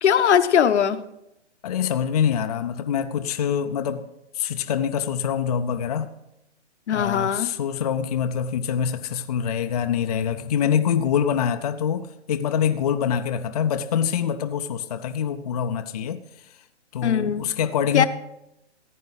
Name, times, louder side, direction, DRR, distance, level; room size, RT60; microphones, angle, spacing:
voice 1, 0.0-1.0 6.9-7.5 17.0-17.5 17.9-18.1, left 8 dB, 70° left, 0.9 m, -20 dB
voice 2, 1.6-4.1 4.3-6.1 6.9-16.2 16.9-18.0, left 8 dB, 35° left, 0.5 m, -25 dB
15.0 x 9.2 x 4.0 m
hypercardioid pair, 150°, 35 cm